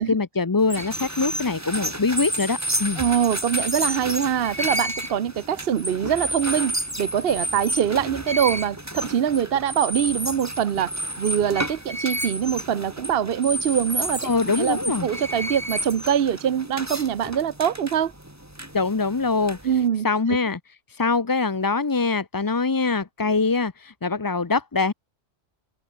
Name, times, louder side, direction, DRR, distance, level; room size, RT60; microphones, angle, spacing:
voice 1, 0.0-3.0 14.2-15.1 18.7-19.6 20.0-20.6 20.9-24.9, left 4 dB, 25° left, 0.5 m, -23 dB
sound 1, 0.6-19.9, right 1 dB, 15° right, 3.5 m, -31 dB
voice 2, 3.0-10.9 11.2-18.1 19.6-20.1, right 9 dB, 55° right, 1.0 m, -24 dB
omnidirectional pair, 1.2 m